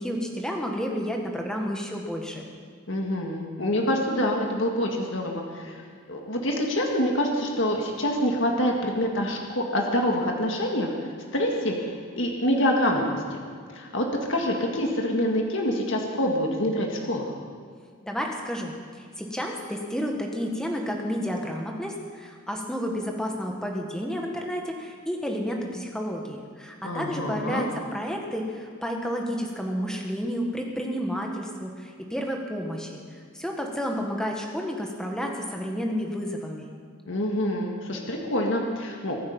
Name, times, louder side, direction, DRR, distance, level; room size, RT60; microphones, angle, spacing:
voice 1, 0.0-2.5 18.0-27.7 27.9-36.7, equal, 5° left, 1 dB, 1.7 m, -31 dB
voice 2, 2.9-5.8 6.1-13.4 13.7-17.3 26.8-27.7 37.1-39.2, equal, 60° left, 1 dB, 1.9 m, -26 dB
23.0 x 9.5 x 5.6 m, 2.1 s
head